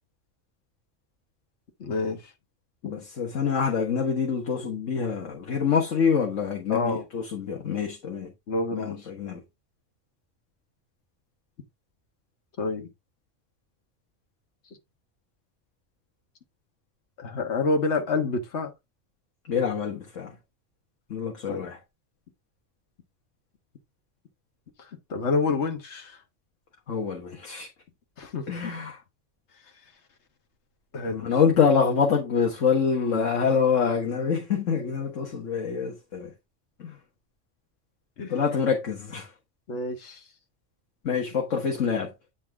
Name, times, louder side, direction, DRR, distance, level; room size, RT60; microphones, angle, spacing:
voice 1, 1.8-2.3 6.7-7.0 8.5-9.1 12.6-12.9 17.2-18.7 21.5-21.7 24.8-26.2 28.2-28.7 30.9-31.5 33.0-33.2 38.2-38.4 39.7-40.2, left 3 dB, 65° left, 1.6 m, -28 dB
voice 2, 2.8-8.3 8.7-9.4 19.5-20.3 21.1-21.8 26.9-27.7 28.5-29.0 31.1-36.3 36.8-37.0 38.3-39.3 41.0-42.1, left 6 dB, 85° left, 1.7 m, -26 dB
9.0 x 4.2 x 3.4 m
omnidirectional pair, 1.3 m